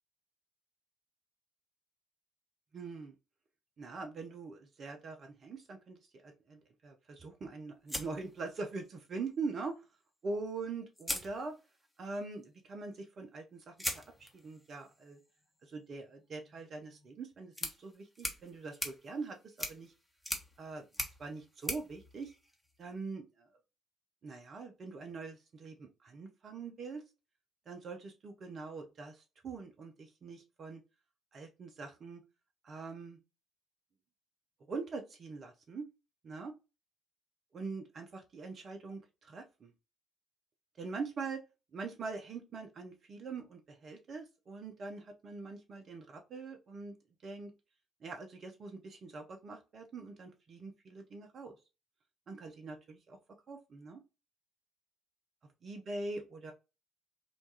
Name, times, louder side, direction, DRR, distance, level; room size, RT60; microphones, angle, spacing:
voice 1, 2.7-3.2 3.8-9.8 10.2-11.5 12.0-15.2 15.6-19.9 20.6-20.8 21.2-22.3 22.8-23.5 24.2-27.0 27.7-30.8 31.3-32.2 32.6-33.2 34.7-35.9 36.2-36.5 37.5-39.7 40.8-41.4 41.7-46.9 47.2-47.5 48.0-51.6 52.3-53.2 53.5-54.0 55.6-56.5, right 4 dB, 45° right, 4 dB, 0.4 m, -43 dB
sound 1, 7.9-9.0 10.3-10.4 10.9-12.0 13.8-23.0, left 1 dB, 10° left, 0.8 m, -43 dB
2.9 x 2.2 x 2.7 m, 0.28 s
figure-of-eight pair, 45°, 0 cm